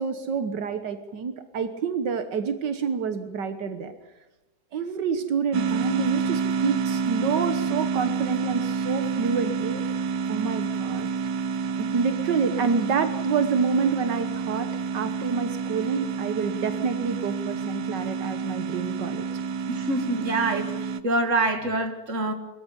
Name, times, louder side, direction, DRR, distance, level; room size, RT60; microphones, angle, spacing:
voice 1, 0.0-3.9 4.7-9.8 10.3-11.1 11.8-14.7 14.9-19.2, right 5 dB, 80° right, 9 dB, 1.9 m, -28 dB
sound 1, 5.5-21.0, right 6 dB, 65° right, 1.4 m, -29 dB
voice 2, 19.7-22.3, right 2 dB, 45° right, 6 dB, 2.6 m, -26 dB
22.5 x 14.5 x 9.8 m, 1.0 s
omnidirectional pair, 1.8 m